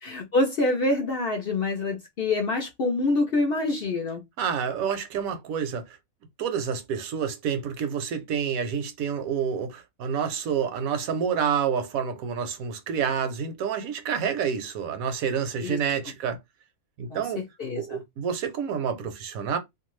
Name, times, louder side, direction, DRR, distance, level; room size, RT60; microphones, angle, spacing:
voice 1, 0.0-4.2 15.6-15.8 17.1-18.0, left 2 dB, 60° left, 0.6 m, -26 dB
voice 2, 4.4-6.0 6.4-16.4 17.0-17.4 17.8-19.6, right 7 dB, 80° right, 1.1 m, -28 dB
2.6 x 2.3 x 3.0 m
omnidirectional pair, 1.5 m